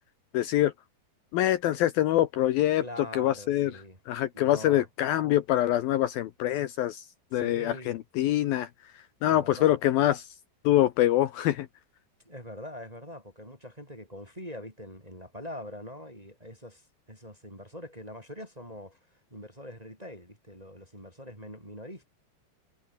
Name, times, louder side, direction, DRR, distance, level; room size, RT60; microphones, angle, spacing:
voice 1, 0.3-0.7 1.3-2.8 3.1-3.7 4.1-7.0 7.3-8.7 9.2-10.3 10.6-11.7, left 13 dB, 75° left, 2.3 m, -25 dB
voice 2, 2.8-4.0 4.3-4.9 7.3-7.9 9.3-9.7 12.2-22.1, left 1 dB, 10° right, 4.5 m, -43 dB
omnidirectional pair, 5.1 m